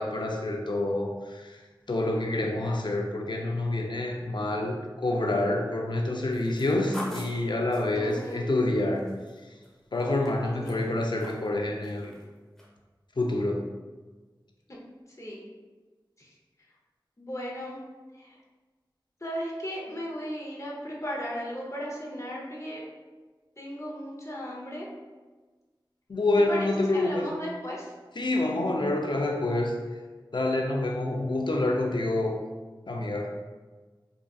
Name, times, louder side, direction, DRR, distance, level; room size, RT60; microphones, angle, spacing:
voice 1, 0.0-1.6 1.9-9.1 9.9-12.1 13.2-13.7 26.1-27.3 28.2-29.7 30.3-32.4 32.9-33.3, left 2 dB, 65° left, 1 dB, 0.4 m, -27 dB
sound 1, 6.3-9.7 10.0-11.5 11.8-12.2 12.6-12.7, equal, 5° left, 0.7 m, -43 dB
voice 2, 7.9-8.5 10.4-10.8 15.2-15.4 16.2-16.3 17.2-17.7 18.1-18.4 19.2-22.8 23.6-24.9 26.5-27.9, equal, 35° left, -4 dB, 0.7 m, -36 dB
3.6 x 2.4 x 2.3 m, 1.3 s
wide cardioid pair, 45°, 8 cm